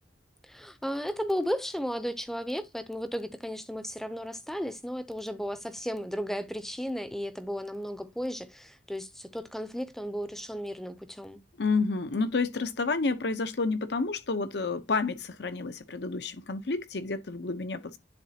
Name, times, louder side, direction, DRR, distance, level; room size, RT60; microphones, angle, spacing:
voice 1, 0.4-11.4, equal, ahead, 0.6 m, -34 dB
voice 2, 11.6-18.0, left 3 dB, 70° left, 0.8 m, -30 dB
10.5 x 3.8 x 2.8 m
head